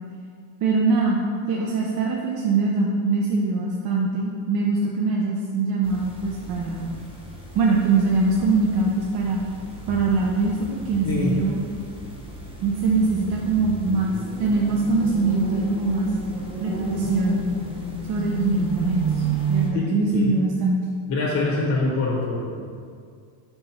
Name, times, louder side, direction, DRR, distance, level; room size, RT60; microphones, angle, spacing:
voice 1, 0.6-1.2 1.5-7.0 7.5-9.4 9.9-11.6 12.6-16.1 16.6-17.5 18.1-19.2 19.5-20.8, right 3 dB, 50° right, -2 dB, 0.6 m, -23 dB
sound 1, 5.8-19.7, right 3 dB, 10° right, 0.7 m, -32 dB
voice 2, 11.0-11.4 19.7-20.3 21.1-22.6, left 3 dB, 35° left, -4 dB, 0.9 m, -25 dB
4.5 x 4.2 x 5.7 m, 2.2 s
cardioid pair, 170°, 49 cm